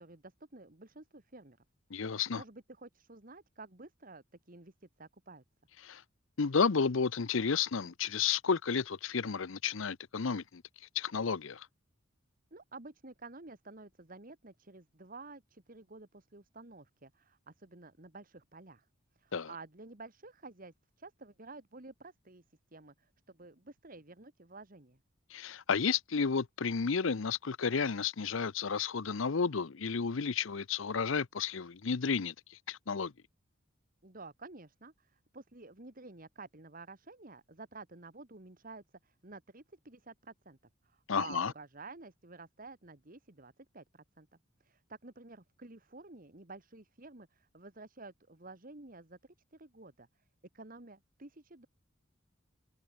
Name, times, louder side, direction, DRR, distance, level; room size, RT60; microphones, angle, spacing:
voice 1, 0.0-1.7 2.1-5.4 12.5-18.9 19.2-22.4 22.7-25.0 34.0-40.6 40.8-44.3 44.6-49.2 49.5-50.1 50.5-51.7, right 3 dB, 45° right, 1.9 m, -51 dB
voice 2, 1.9-2.4 5.8-6.0 6.4-10.6 10.9-11.7 19.3-19.5 25.3-32.3 32.7-33.1 41.1-41.5, left 5 dB, 75° left, 0.7 m, -32 dB
head